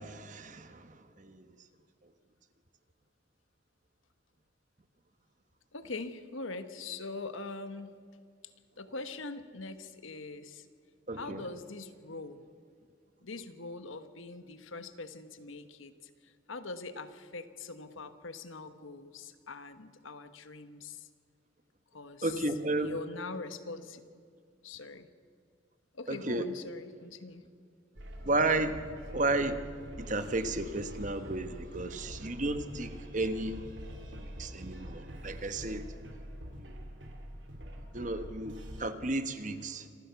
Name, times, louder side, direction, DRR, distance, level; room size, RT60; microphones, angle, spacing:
voice 1, 0.0-1.5 11.1-11.5 22.2-23.0 26.1-26.5 28.2-28.9 29.1-29.7 30.0-33.7 34.2-35.9 36.6-36.9 37.9-39.9, right 2 dB, 40° right, 10 dB, 1.2 m, -33 dB
voice 2, 5.7-7.9 8.8-10.7 11.1-12.4 13.2-21.1 21.9-22.4 22.8-24.0 24.6-25.1 25.9-27.4, left 3 dB, 80° left, 10 dB, 1.3 m, -43 dB
sound 1, 28.0-38.9, equal, 65° right, 2.8 m, -45 dB
26.0 x 15.5 x 7.1 m, 2.2 s
head